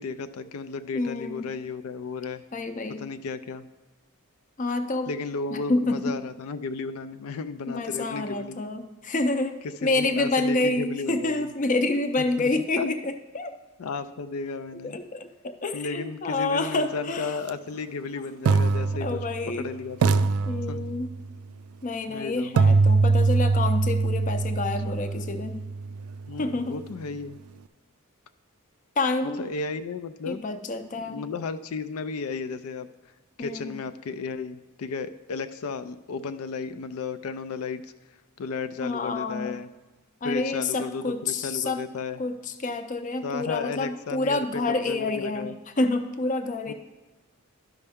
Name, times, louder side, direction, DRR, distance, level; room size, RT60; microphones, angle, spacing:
voice 1, 0.0-2.4 3.0-3.7 5.1-8.6 9.8-11.5 12.4-12.5 12.8-12.9 13.8-15.0 15.7-19.2 19.6-20.2 20.7-20.9 22.1-22.6 26.3-27.4 29.4-30.4 31.1-32.9 33.4-37.9 38.4-39.7 40.2-42.2 43.2-45.6 46.7-46.8, left 4 dB, 85° left, 10 dB, 0.4 m, -34 dB
voice 2, 0.9-1.5 2.5-3.1 4.6-5.1 5.5-6.2 7.7-13.5 14.7-17.4 18.2-18.3 19.0-19.7 20.1-20.2 20.5-21.2 21.8-25.7 26.4-26.8 29.0-29.5 30.3-31.2 33.4-33.7 38.8-39.6 40.2-41.9 42.2-46.7, left 2 dB, 35° left, 8 dB, 0.5 m, -28 dB
sound 1, 17.4-17.5 18.5-19.6 20.0-21.3 22.6-26.5, right 4 dB, 80° right, 0.3 m, -23 dB
12.0 x 5.5 x 3.5 m, 1.2 s
head